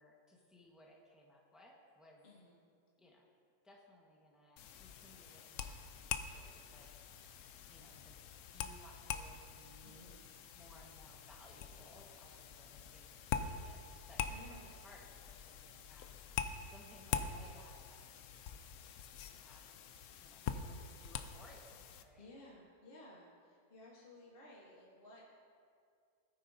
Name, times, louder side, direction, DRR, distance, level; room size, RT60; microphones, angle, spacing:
voice 1, 0.0-2.3 3.0-3.3 3.6-7.3 7.7-8.2 8.5-10.1 10.5-19.7 20.2-22.4, left 1 dB, ahead, -2 dB, 1.1 m, -62 dB
voice 2, 2.2-2.6 9.8-10.2 14.3-14.7 22.2-25.4, left 1 dB, 35° left, -4 dB, 1.4 m, -57 dB
sound 1, 4.6-22.0, left 7 dB, 85° left, 0.6 m, -45 dB
17.0 x 9.5 x 2.7 m, 2.2 s
omnidirectional pair, 1.9 m